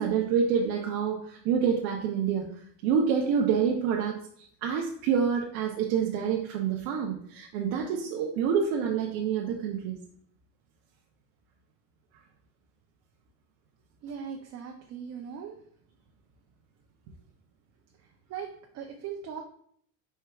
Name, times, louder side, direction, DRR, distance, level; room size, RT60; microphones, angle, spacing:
voice 1, 0.0-2.5 2.8-10.0, right 7 dB, 90° right, 0 dB, 0.8 m, -27 dB
voice 2, 14.0-15.6 18.3-19.4, right 7 dB, 45° right, 1 dB, 0.5 m, -39 dB
4.6 x 4.5 x 2.3 m, 0.62 s
cardioid pair, 140°, 37 cm